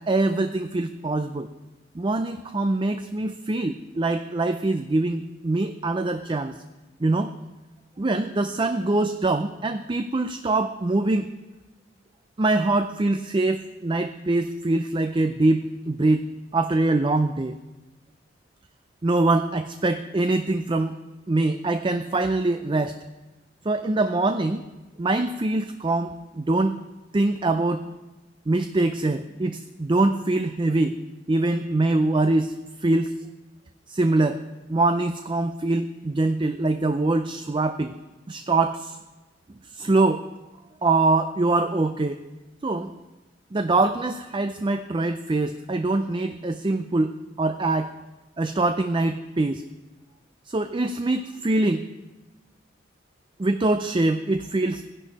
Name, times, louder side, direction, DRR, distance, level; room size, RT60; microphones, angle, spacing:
voice 1, 0.0-1.5 1.9-6.6 7.0-7.3 8.0-11.3 12.4-16.2 16.5-17.6 19.0-21.0 21.3-23.0 23.6-24.6 25.0-26.8 27.1-27.8 28.5-31.0 31.3-33.1 33.9-34.4 34.7-37.9 38.3-39.0 39.7-40.2 40.8-42.2 42.6-42.9 43.5-47.9 48.4-49.6 50.5-51.9 53.4-54.8, right 2 dB, 25° right, 9 dB, 0.5 m, -23 dB
16.0 x 11.0 x 4.1 m, 1.1 s
head